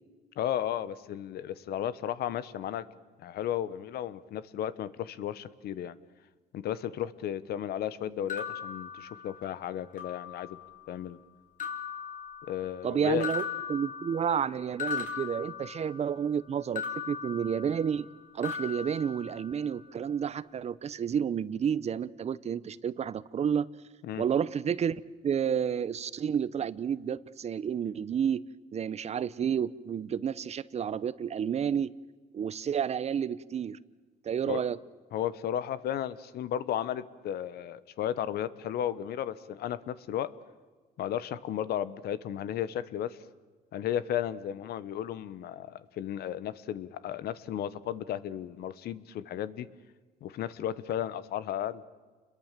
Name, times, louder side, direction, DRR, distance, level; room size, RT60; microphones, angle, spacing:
voice 1, 0.4-2.9 3.2-5.9 6.5-10.6 10.9-11.2 12.5-13.3 24.0-24.2 34.5-34.6 35.1-40.3 41.0-43.2 43.7-49.7 50.2-51.8, left 10 dB, 70° left, 16 dB, 1.2 m, -34 dB
sound 1, 8.3-9.6 10.0-10.7 11.6-12.9 13.2-16.2 16.8-18.1 18.4-19.8, left 7 dB, 50° left, 4.0 m, -39 dB
voice 2, 12.8-13.4 13.7-18.1 18.3-23.7 24.2-28.4 28.7-31.9 32.3-33.8 34.2-34.8, right 8 dB, 40° right, 18 dB, 0.8 m, -30 dB
29.0 x 22.0 x 7.5 m, 1.4 s
cardioid pair, 110°, 17 cm